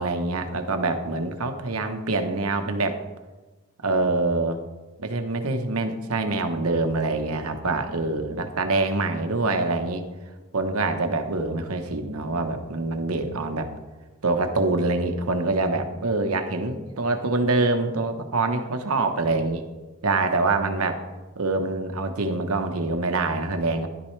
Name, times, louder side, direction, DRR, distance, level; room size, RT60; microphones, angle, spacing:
voice 1, 0.0-3.0 3.8-4.6 5.0-10.0 10.5-13.7 14.2-19.6 20.0-21.0 21.4-23.9, right 3 dB, 85° right, 6 dB, 1.1 m, -25 dB
12.0 x 11.5 x 3.3 m, 1.2 s
head